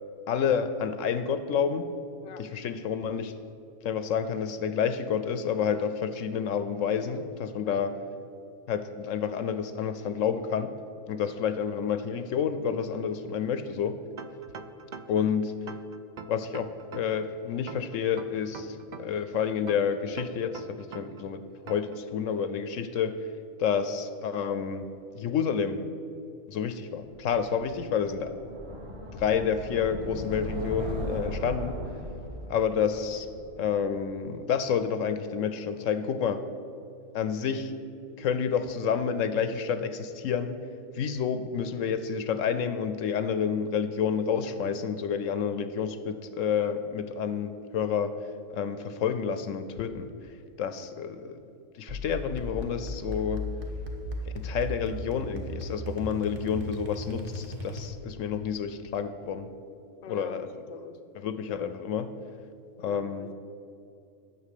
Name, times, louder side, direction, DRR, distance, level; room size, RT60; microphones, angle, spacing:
voice 1, 0.3-1.9 2.4-3.3 3.8-7.9 8.7-10.7 11.1-14.0 15.1-15.5 16.3-23.2 23.6-24.8 25.1-25.8 26.5-28.3 29.1-31.8 32.5-33.3 33.6-36.4 37.1-37.7 38.2-40.6 40.9-48.1 48.5-50.1 50.6-51.4 51.7-53.5 54.3-59.5 60.1-60.5 61.2-62.1 62.8-63.3, left 7 dB, 75° left, 11 dB, 0.9 m, -29 dB
sound 1, 14.2-15.3 15.7-17.2 17.7-19.2 19.7-21.2 21.7-22.0, right 6 dB, 60° right, 0.4 m, -43 dB
sound 2, 27.1-34.2, equal, 25° right, 1.3 m, -38 dB
sound 3, 51.9-58.2, left 1 dB, 45° right, 1.2 m, -37 dB
voice 2, 60.0-61.0 62.9-63.3, left 6 dB, 45° left, 7 dB, 0.5 m, -45 dB
9.5 x 6.0 x 8.3 m, 2.6 s
omnidirectional pair, 1.4 m